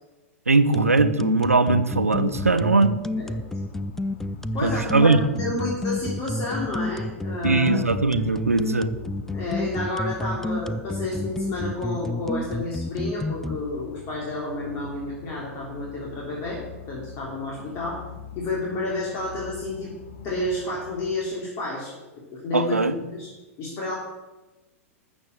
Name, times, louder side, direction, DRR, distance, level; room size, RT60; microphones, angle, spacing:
voice 1, 0.5-3.0 4.6-5.2 7.4-8.9 22.5-23.0, right 3 dB, 80° right, 11 dB, 1.0 m, -20 dB
sound 1, 0.7-13.6, left 1 dB, 5° left, 0.4 m, -29 dB
sound 2, 2.2-21.1, left 6 dB, 65° left, 1.7 m, -43 dB
voice 2, 4.5-7.9 9.3-16.6 16.9-18.0 18.3-19.9 20.2-21.9 22.3-23.3 23.6-23.9, left 2 dB, 35° left, -3 dB, 3.4 m, -30 dB
13.5 x 7.3 x 8.2 m, 1.1 s
figure-of-eight pair, 100°, 8 cm